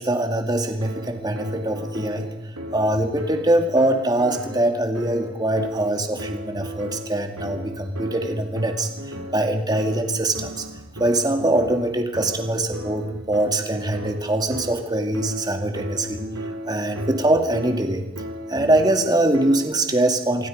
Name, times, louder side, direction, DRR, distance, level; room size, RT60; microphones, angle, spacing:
voice 1, 0.0-2.3 2.7-8.9 9.3-10.6 11.0-16.2 16.7-18.1 18.5-20.5, right 1 dB, 20° right, 5 dB, 2.2 m, -22 dB
sound 1, 0.8-19.9, equal, 90° right, 4.5 m, -35 dB
25.5 x 24.0 x 5.2 m, 0.88 s
head